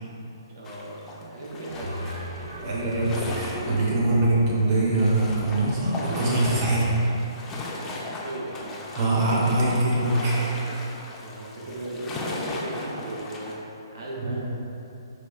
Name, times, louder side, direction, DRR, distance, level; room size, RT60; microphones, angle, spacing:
voice 1, 0.4-2.1 8.2-8.8 11.2-14.4, right 1 dB, 70° right, -4 dB, 0.7 m, -37 dB
sound 1, 0.6-4.0 4.3-4.4 4.7-13.5, left 2 dB, 15° left, 0.4 m, -37 dB
sound 2, 1.7-6.7, equal, 90° right, 1.1 m, -36 dB
voice 2, 2.6-7.0 8.9-10.5 14.2-14.4, right 2 dB, 40° right, -5 dB, 0.9 m, -23 dB
4.5 x 2.4 x 2.3 m, 2.8 s
hypercardioid pair, 135°, 2 cm